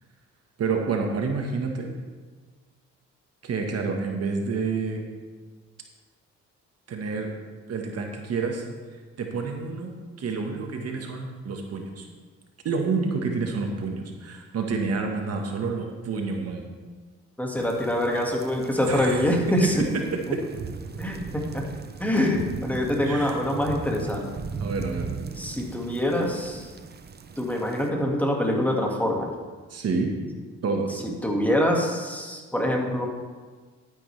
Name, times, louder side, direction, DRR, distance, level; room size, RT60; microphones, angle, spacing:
voice 1, 0.6-1.9 3.4-5.0 6.9-7.3 7.7-8.6 9.2-9.9 10.2-12.1 12.6-16.7 18.1-18.2 18.8-19.2 19.6-19.7 20.1-20.4 23.0-23.4 24.6-25.1 29.7-30.1 30.6-31.0, right 4 dB, 55° right, 3 dB, 1.3 m, -28 dB
voice 2, 17.4-19.8 20.3-20.4 21.0-21.6 22.0-24.3 25.4-26.7 27.4-29.3 31.0-33.1, left 1 dB, 5° left, 0 dB, 1.8 m, -25 dB
sound 1, 17.6-27.9, right 5 dB, 35° right, 0.7 m, -38 dB
11.5 x 9.8 x 3.3 m, 1.4 s
cardioid pair, 90°, 30 cm